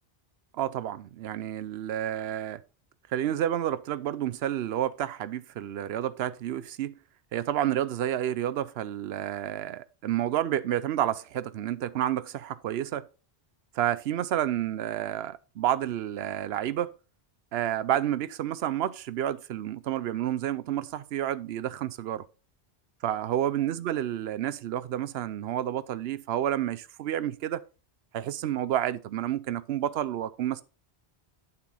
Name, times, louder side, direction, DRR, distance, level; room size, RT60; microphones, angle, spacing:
voice 1, 0.5-2.6 3.1-6.9 7.3-13.0 13.7-16.9 17.5-22.3 23.0-27.6 28.1-30.6, right 11 dB, 75° right, 0.8 m, -30 dB
8.9 x 6.0 x 3.8 m
omnidirectional pair, 1.1 m